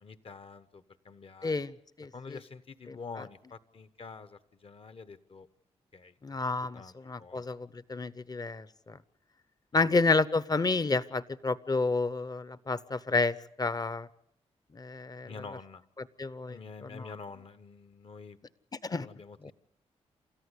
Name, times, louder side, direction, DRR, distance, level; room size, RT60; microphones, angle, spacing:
voice 1, 0.0-1.6 2.1-5.5 5.9-6.4 6.7-7.4 9.7-9.9 15.2-15.8 16.5-18.4 19.0-19.5, left 4 dB, 50° left, 13 dB, 1.3 m, -47 dB
voice 2, 1.4-2.4 2.9-3.0 6.2-9.0 9.7-14.1 14.7-15.3 16.2-16.6 16.9-17.1 18.8-19.1 19.4-19.5, left 3 dB, 35° left, 17 dB, 0.9 m, -30 dB
28.5 x 13.5 x 8.2 m, 0.73 s
cardioid pair, 65°, 12 cm